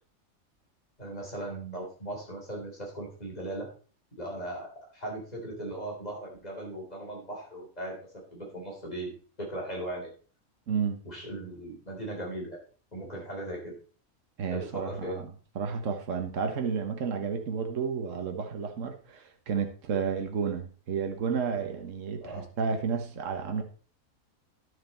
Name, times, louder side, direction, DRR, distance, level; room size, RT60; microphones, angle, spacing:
voice 1, 1.0-3.7 4.2-10.1 11.0-12.6 12.9-13.7 14.5-15.2 22.2-22.5, right 1 dB, 30° left, 3.7 m, -38 dB
voice 2, 10.7-11.0 14.4-23.6, right 6 dB, 65° right, 1.5 m, -31 dB
11.0 x 6.7 x 4.3 m
omnidirectional pair, 1.5 m